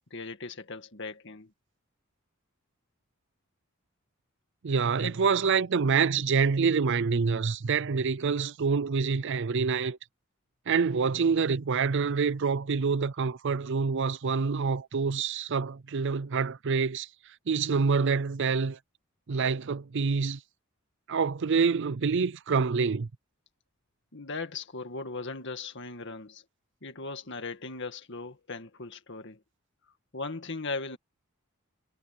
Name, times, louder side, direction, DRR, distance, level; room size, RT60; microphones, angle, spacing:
voice 1, 0.1-1.5 5.0-5.1 24.1-26.4 26.8-29.4 30.1-31.0, left 3 dB, 55° left, 2.1 m, -38 dB
voice 2, 4.6-10.0 10.7-17.1 17.5-18.8 19.3-20.4 21.1-23.1, right 5 dB, 60° right, 0.5 m, -26 dB
head